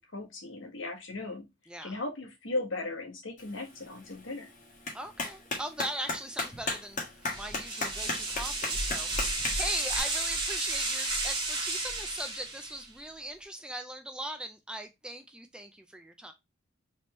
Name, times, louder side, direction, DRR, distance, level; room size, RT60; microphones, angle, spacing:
voice 1, 0.0-1.5 1.8-4.5, left 2 dB, 75° left, 1.5 m, -37 dB
voice 2, 1.7-2.0 4.9-16.3, right 1 dB, 5° right, 0.4 m, -40 dB
Clapping, 3.4-10.0, left 3 dB, 40° left, 1.5 m, -37 dB
sound 1, 7.3-12.9, right 2 dB, 20° right, 1.6 m, -32 dB
4.2 x 3.5 x 3.0 m
head